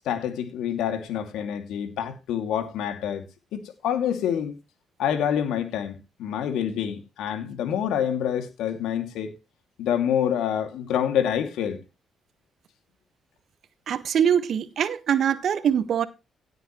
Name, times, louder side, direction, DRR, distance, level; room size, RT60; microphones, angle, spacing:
voice 1, 0.1-3.2 3.5-4.5 5.0-9.3 9.8-11.8, left 9 dB, 80° left, 2.5 m, -27 dB
voice 2, 13.9-16.1, right 8 dB, 65° right, 1.5 m, -23 dB
17.0 x 7.9 x 3.1 m
supercardioid pair, 65°, 0 cm